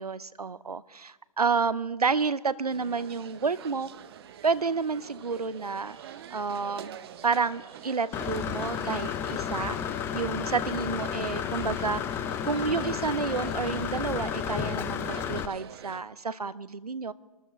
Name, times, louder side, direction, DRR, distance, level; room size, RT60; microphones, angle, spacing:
voice 1, 0.0-3.9 4.4-6.0 6.3-7.0 7.2-17.1, right 5 dB, 85° right, 16 dB, 0.7 m, -30 dB
sound 1, 2.7-16.0, right 10 dB, 40° right, 0.8 m, -46 dB
sound 2, 5.5-9.0 9.4-14.5 15.0-15.1, right 4 dB, 20° right, 2.2 m, -57 dB
Engine / Mechanisms, 8.1-15.5, left 8 dB, 10° left, 0.4 m, -32 dB
26.5 x 13.5 x 3.3 m, 1.2 s
figure-of-eight pair, 130°, 19 cm